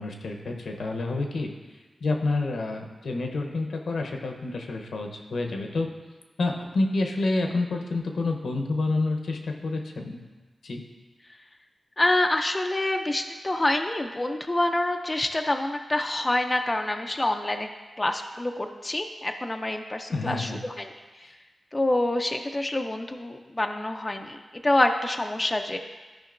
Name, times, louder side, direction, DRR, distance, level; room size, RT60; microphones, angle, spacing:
voice 1, 0.0-1.5 2.0-5.9 6.4-10.2 10.6-10.8 20.1-20.6, left 2 dB, 80° left, 3 dB, 0.8 m, -28 dB
voice 2, 12.0-17.7 18.0-20.9 21.7-25.8, left 1 dB, 20° left, 5 dB, 0.4 m, -26 dB
12.5 x 5.1 x 2.5 m, 1.3 s
wide cardioid pair, 80°, 0 cm